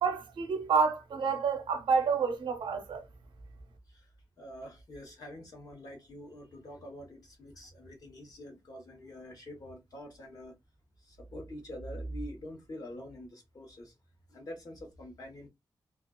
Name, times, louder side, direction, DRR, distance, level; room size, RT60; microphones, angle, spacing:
voice 1, 0.0-3.0, right 5 dB, 85° right, 0.6 m, -29 dB
voice 2, 4.4-10.5 11.0-13.9 14.3-15.5, equal, 50° left, 1.0 m, -45 dB
2.4 x 2.3 x 2.2 m
wide cardioid pair, 130°, 8 cm